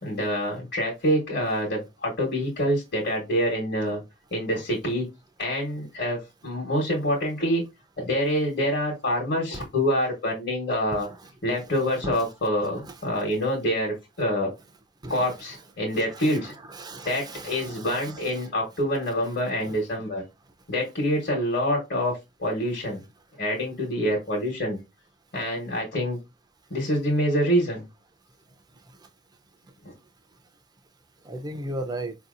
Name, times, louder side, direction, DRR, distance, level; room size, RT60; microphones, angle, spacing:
voice 1, 0.0-4.0 4.3-5.0 5.4-7.6 8.0-11.1 11.4-14.5 15.1-16.5 17.0-20.2 20.7-22.1 22.4-23.0 23.4-24.8 25.3-26.2 26.7-27.9 29.8-29.9, equal, 55° left, 1.2 m, -26 dB
voice 2, 10.9-11.3 11.6-12.3 12.6-13.4 15.0-15.4 15.9-18.5 18.8-19.7 31.2-32.1, right 1 dB, 20° right, 0.5 m, -38 dB
4.5 x 2.7 x 2.5 m
head